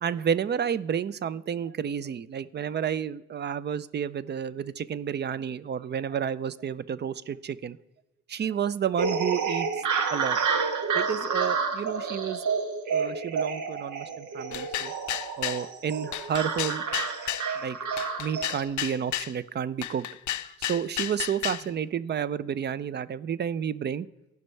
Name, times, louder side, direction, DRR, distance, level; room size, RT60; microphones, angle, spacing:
voice 1, 0.0-7.8 8.3-9.7 10.1-10.4 10.9-12.4 12.9-14.9 15.4-16.8 17.6-17.8 18.2-20.1 20.6-24.1, right 8 dB, 35° right, 17 dB, 0.4 m, -30 dB
sound 1, 9.0-18.6, right 5 dB, 85° right, 1.1 m, -29 dB
sound 2, 14.5-15.6 16.1-17.5 18.0-19.3 19.8-21.7, left 13 dB, 75° left, 0.5 m, -32 dB
15.5 x 5.4 x 3.2 m, 0.99 s
cardioid pair, 115°, 30 cm